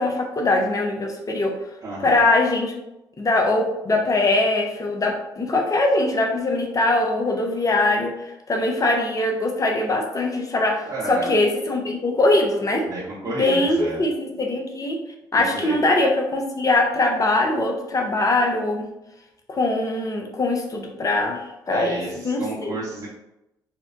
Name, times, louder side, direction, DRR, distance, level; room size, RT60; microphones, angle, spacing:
voice 1, 0.0-1.5 2.0-2.7 3.2-12.9 13.3-15.0 15.3-18.9 19.5-22.7, left 2 dB, 35° left, 1 dB, 0.8 m, -22 dB
voice 2, 1.8-2.2 10.9-11.3 12.9-14.0 15.3-15.7 21.7-23.1, right 2 dB, 45° right, -6 dB, 0.9 m, -31 dB
4.2 x 2.2 x 2.6 m, 0.91 s
hypercardioid pair, 50°, 10 cm